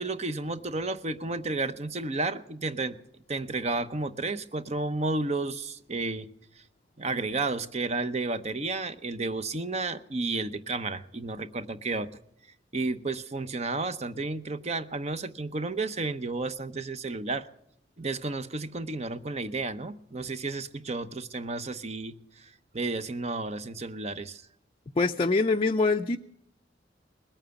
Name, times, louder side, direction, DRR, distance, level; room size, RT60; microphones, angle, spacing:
voice 1, 0.0-3.0 3.3-6.3 7.0-12.1 12.7-17.5 18.0-24.4, right 3 dB, 35° right, 12 dB, 0.7 m, -32 dB
voice 2, 25.0-26.2, left 3 dB, 30° left, 4 dB, 0.5 m, -24 dB
20.5 x 8.9 x 7.0 m, 0.75 s
head